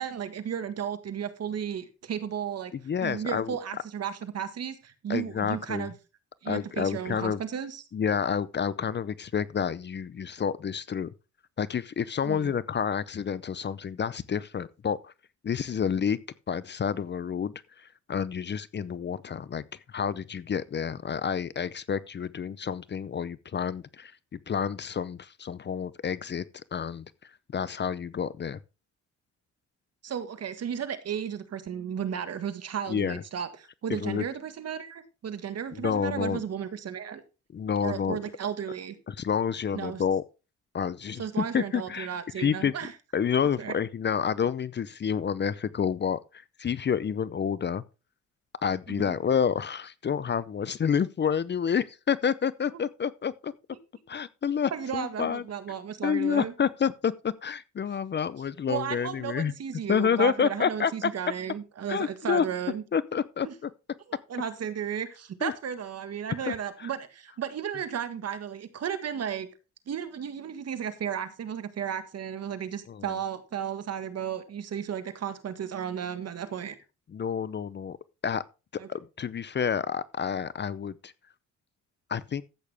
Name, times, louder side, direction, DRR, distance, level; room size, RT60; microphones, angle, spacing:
voice 1, 0.0-2.7 3.0-5.9 6.4-7.8 12.2-12.5 30.0-33.5 33.8-37.2 37.8-38.9 39.7-40.0 41.2-42.9 43.6-43.7 48.9-49.1 54.7-56.5 58.7-62.8 63.4-63.5 64.3-69.5 69.9-76.8 78.8-78.9, right 8 dB, 55° right, 1.7 m, -34 dB
voice 2, 2.7-3.6 5.1-5.9 6.5-7.4 7.9-11.1 11.6-15.1 15.4-16.2 16.5-26.4 26.7-28.6 32.9-33.2 33.9-34.3 35.7-36.4 37.5-38.2 39.1-40.2 40.7-42.1 42.4-42.7 43.1-47.8 48.6-53.5 54.1-55.4 56.0-59.5 59.9-61.1 61.9-62.5 62.9-63.7 65.4-65.5 66.5-66.6 66.8-66.9 72.9-73.1 77.1-78.0 78.2-78.4 78.7-81.1 82.1-82.4, left 7 dB, 35° left, 0.7 m, -29 dB
13.5 x 8.5 x 3.5 m
cardioid pair, 90°, 30 cm